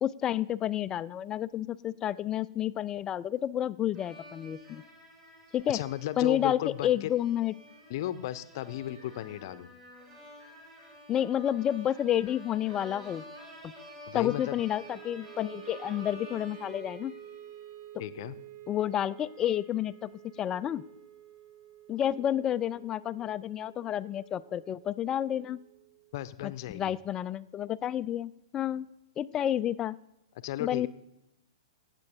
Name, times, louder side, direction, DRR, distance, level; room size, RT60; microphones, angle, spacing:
voice 1, 0.0-4.8 5.5-5.8 6.2-7.5 11.1-13.2 13.6-13.7 14.1-17.2 18.7-20.1 20.4-20.8 21.9-25.6 26.4-28.9 29.2-30.0 30.6-30.9, left 11 dB, 20° left, 16 dB, 0.4 m, -30 dB
sound 1, 3.9-17.6, equal, 25° right, 5.3 m, -51 dB
voice 2, 5.7-7.1 7.9-9.7 14.1-14.6 18.0-18.4 26.1-26.9 30.4-30.9, left 13 dB, 45° left, 14 dB, 0.7 m, -35 dB
Wind instrument woodwind instrument, 14.8-27.0, right 11 dB, 50° right, 3.0 m, -50 dB
18.0 x 7.8 x 4.5 m, 0.88 s
figure-of-eight pair, 110°, 3 cm